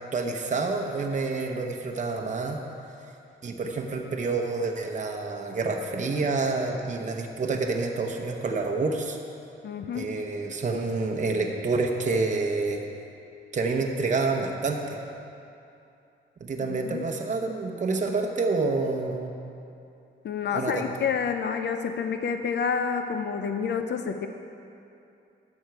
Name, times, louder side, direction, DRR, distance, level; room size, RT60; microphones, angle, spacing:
voice 1, 0.1-2.6 3.4-9.2 9.9-12.8 13.5-15.0 16.4-19.3 20.5-20.9, right 3 dB, 40° right, 2 dB, 0.9 m, -28 dB
voice 2, 9.6-10.1 16.8-17.0 20.2-24.3, left 6 dB, 60° left, 7 dB, 0.5 m, -28 dB
11.5 x 7.3 x 4.7 m, 2.7 s
cardioid pair, 115°, 20 cm